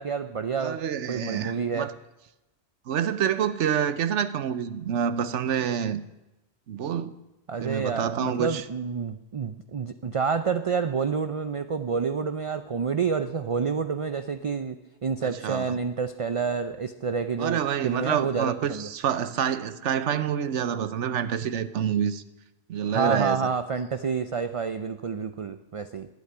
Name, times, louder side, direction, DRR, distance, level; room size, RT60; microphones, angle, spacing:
voice 1, 0.0-0.8 1.1-1.9 7.5-14.8 15.0-18.9 22.9-26.1, right 5 dB, 45° right, 0.4 m, -28 dB
voice 2, 0.6-1.9 2.9-6.0 6.7-7.2 7.6-8.6 15.2-15.8 17.4-22.2 22.7-23.4, right 8 dB, 90° right, 1.1 m, -27 dB
12.0 x 8.6 x 9.7 m
omnidirectional pair, 1.2 m